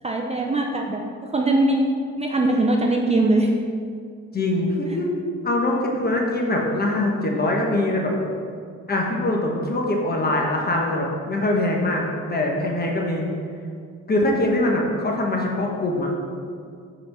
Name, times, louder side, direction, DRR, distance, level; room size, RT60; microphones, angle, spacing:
voice 1, 0.0-1.0 1.3-1.9 2.2-3.5, right 2 dB, 20° right, 1 dB, 0.5 m, -21 dB
voice 2, 4.3-5.1 5.4-8.1 8.9-12.0 12.3-13.3 14.1-16.1, left 1 dB, 30° left, -1 dB, 1.2 m, -23 dB
5.0 x 4.3 x 5.8 m, 2.2 s
cardioid pair, 90°, 30 cm